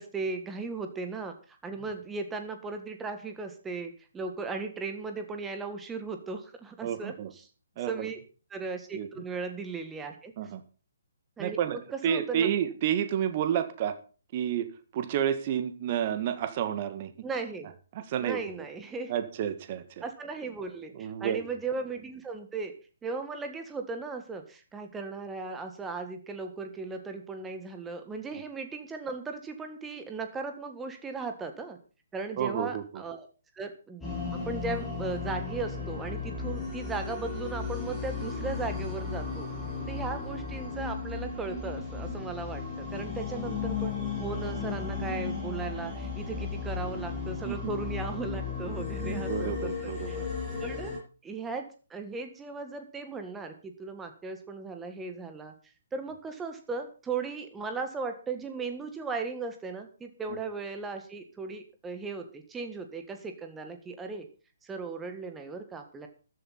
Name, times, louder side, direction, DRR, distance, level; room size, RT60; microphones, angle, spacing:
voice 1, 0.0-7.1 7.8-8.2 8.5-10.3 11.4-12.6 17.2-17.7 18.2-19.1 20.0-22.7 23.0-31.8 32.1-33.3 33.5-34.0 34.4-39.5 39.9-43.9 44.2-50.2 50.6-50.9 51.2-55.5 55.9-64.3 64.6-66.1, right 4 dB, 10° right, 6 dB, 1.7 m, -37 dB
voice 2, 6.8-7.3 7.8-8.1 8.9-9.1 10.4-10.6 11.4-14.0 14.3-14.7 14.9-17.1 17.9-18.4 19.1-20.0 20.9-21.4 32.4-33.0 46.4-46.5 47.4-47.7 49.0-50.3 60.3-60.4, right 9 dB, 35° right, 10 dB, 1.9 m, -30 dB
sound 1, 34.0-51.0, left 5 dB, 5° left, 7.8 m, -35 dB
14.5 x 11.5 x 4.2 m, 0.36 s
figure-of-eight pair, 135°, 0 cm